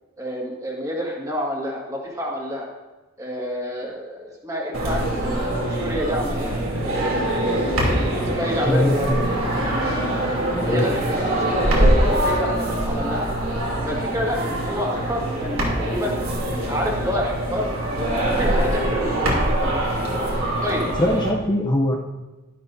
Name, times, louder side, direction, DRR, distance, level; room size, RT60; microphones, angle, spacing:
voice 1, 0.2-2.7 3.2-7.2 8.2-9.1 10.2-13.3 13.8-16.3 16.7-17.7 18.0-19.8 20.6-20.9, equal, 15° right, -2 dB, 1.9 m, -28 dB
sound 1, 4.7-21.3, right 1 dB, 65° right, 3.0 m, -23 dB
voice 2, 8.6-9.3 10.6-10.9 21.0-21.9, left 1 dB, 20° left, -1 dB, 0.7 m, -22 dB
12.0 x 12.0 x 2.7 m, 1.2 s
head